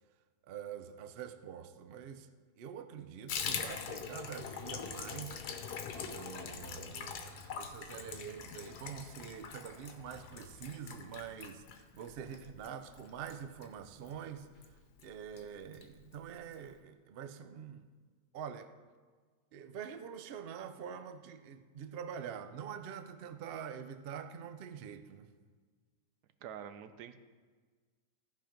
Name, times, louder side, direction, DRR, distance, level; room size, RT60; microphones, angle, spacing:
voice 1, 0.5-2.3 2.6-5.4 6.0-14.5 15.0-17.8 18.3-18.7 19.5-25.3, right 8 dB, 65° right, 9 dB, 0.5 m, -45 dB
Water tap faucet / Bathtub (filling or washing), 3.3-14.2 14.6-14.7 15.0-15.1 15.4-15.9 16.1-16.2 16.5-16.6, left 6 dB, 90° left, 1.4 m, -43 dB
voice 2, 26.4-27.2, right 9 dB, 85° right, 11 dB, 1.2 m, -46 dB
14.5 x 5.1 x 5.1 m, 1.5 s
omnidirectional pair, 1.7 m